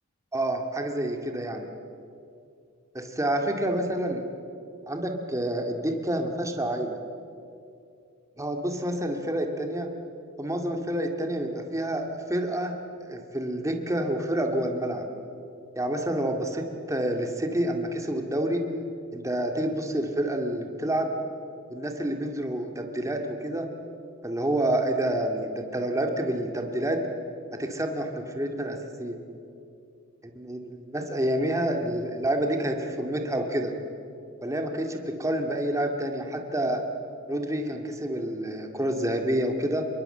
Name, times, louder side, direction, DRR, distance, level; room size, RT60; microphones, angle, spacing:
voice 1, 0.3-1.6 2.9-4.2 4.9-7.0 8.4-9.9 10.4-12.8 13.0-15.1 15.8-18.6 19.1-21.1 21.7-23.7 24.2-27.0 27.5-29.2 30.4-33.7 34.4-36.8 37.3-39.9, right 1 dB, 15° right, 4 dB, 2.1 m, -28 dB
26.5 x 23.0 x 7.8 m, 2.5 s
head